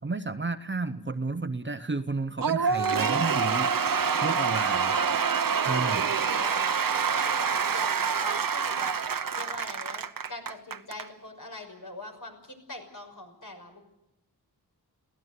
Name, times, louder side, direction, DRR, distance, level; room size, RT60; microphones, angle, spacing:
voice 1, 0.0-3.7 4.2-4.9 5.6-6.1, right 3 dB, 30° right, 10 dB, 0.9 m, -32 dB
Cheering / Applause / Crowd, 2.4-11.1, right 6 dB, 60° right, 0.9 m, -26 dB
voice 2, 4.8-8.9 9.3-13.8, left 2 dB, 55° left, 3 dB, 6.0 m, -43 dB
23.5 x 17.0 x 8.2 m, 0.86 s
wide cardioid pair, 95°, 38 cm